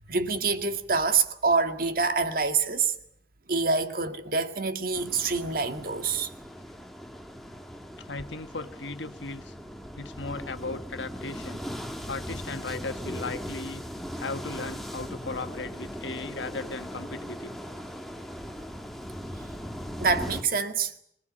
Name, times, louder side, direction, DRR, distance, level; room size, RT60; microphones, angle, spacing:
voice 1, 0.1-2.9 3.5-6.3 20.0-20.9, right 4 dB, 50° right, 2.1 m, -26 dB
sound 1, 4.9-20.4, equal, ahead, 1.7 m, -39 dB
voice 2, 8.0-9.5 10.0-11.7 12.1-13.8 14.1-17.5, left 3 dB, 80° left, 1.6 m, -37 dB
26.0 x 19.5 x 8.8 m
head